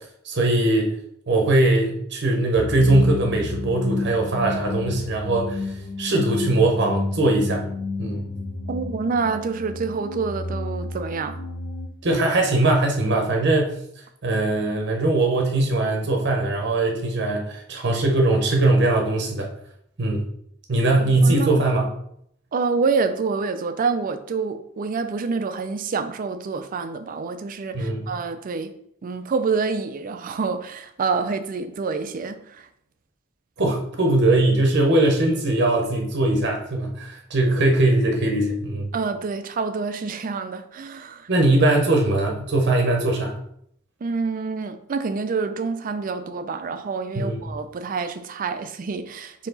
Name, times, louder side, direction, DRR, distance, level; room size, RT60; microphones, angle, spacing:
voice 1, 0.2-0.9 1.3-5.6 6.0-7.6 8.0-8.2 12.0-13.8 14.2-19.5 20.0-20.2 20.7-21.9 27.7-28.1 33.6-38.9 41.3-43.4 47.2-47.4, right 2 dB, 60° right, 0.8 m, -20 dB
sound 1, 2.5-11.9, left 3 dB, 45° left, 0.6 m, -31 dB
voice 2, 8.7-11.4 21.2-21.5 22.5-28.7 29.0-32.7 38.9-41.3 44.0-49.5, right 4 dB, 45° right, 0.4 m, -27 dB
4.6 x 2.9 x 3.9 m
head